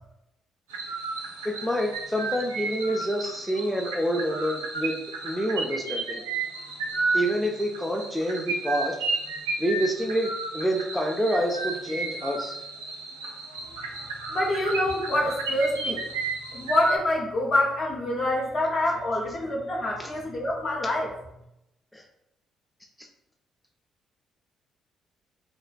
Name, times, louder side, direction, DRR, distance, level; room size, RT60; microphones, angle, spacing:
sound 1, 0.7-17.0, right 3 dB, 85° right, 0.3 m, -33 dB
voice 1, 1.4-5.0 5.2-6.2 7.1-8.9 9.6-12.5 21.9-22.0, equal, 5° left, 0 dB, 0.4 m, -27 dB
voice 2, 14.3-16.0 16.5-21.1, left 1 dB, 50° left, -2 dB, 0.8 m, -26 dB
2.5 x 2.1 x 2.4 m, 0.84 s
hypercardioid pair, 45°, 0 cm